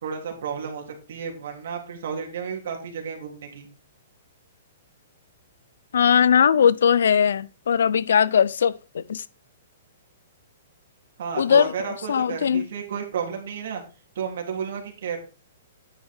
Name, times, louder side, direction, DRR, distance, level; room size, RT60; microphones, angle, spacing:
voice 1, 0.0-3.7 11.2-13.8 14.1-15.2, right 7 dB, 60° right, 3.1 m, -32 dB
voice 2, 5.9-9.2 11.4-11.7 12.1-12.7, left 7 dB, 80° left, 0.5 m, -19 dB
9.8 x 7.2 x 3.5 m
hypercardioid pair, 170°, 0 cm